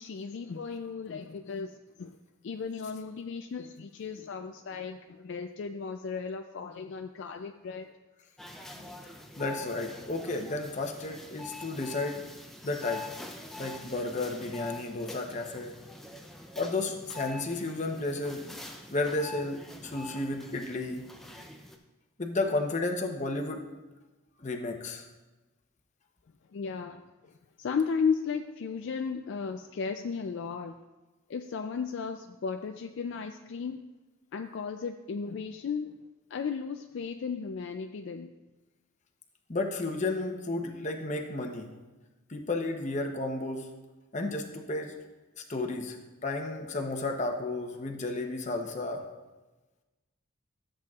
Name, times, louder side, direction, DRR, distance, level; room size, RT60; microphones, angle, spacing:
voice 1, 0.0-2.2 2.4-8.0 26.5-30.8 31.3-33.9 34.3-35.9 36.3-38.3, left 5 dB, 55° left, 6 dB, 0.3 m, -35 dB
sound 1, 8.4-21.8, left 2 dB, ahead, 0.5 m, -45 dB
voice 2, 9.4-12.2 12.6-13.1 13.6-15.8 16.6-18.6 18.9-21.0 22.2-23.6 24.4-25.0 39.5-41.7 42.3-43.7 44.1-44.9 45.5-49.0, left 2 dB, 35° left, 3 dB, 0.8 m, -32 dB
13.0 x 7.6 x 2.4 m, 1.1 s
head